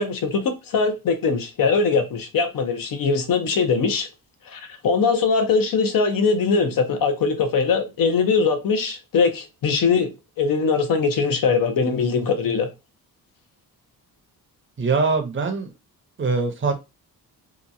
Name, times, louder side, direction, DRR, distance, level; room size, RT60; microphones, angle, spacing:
voice 1, 0.0-4.1 4.5-10.1 10.4-12.7, left 5 dB, 65° left, 0.7 m, -21 dB
voice 2, 14.8-15.7 16.2-16.7, right 4 dB, 35° right, 0.7 m, -22 dB
2.9 x 2.3 x 2.6 m
cardioid pair, 95°, 37 cm